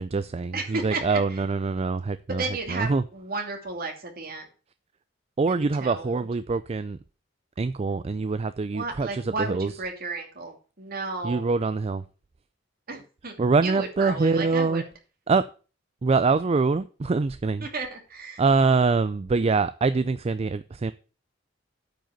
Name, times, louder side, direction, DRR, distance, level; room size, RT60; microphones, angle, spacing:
voice 1, 0.0-2.4 2.7-3.0 5.4-7.0 7.6-9.7 11.2-12.0 13.4-14.8 15.3-15.4 16.0-17.7 18.4-20.9, right 4 dB, 35° right, 0.4 m, -24 dB
voice 2, 0.5-1.4 2.4-4.5 5.5-6.3 8.7-11.5 12.9-13.3 13.6-14.9 17.6-18.4, right 3 dB, 50° right, 2.6 m, -33 dB
9.0 x 5.1 x 7.8 m
head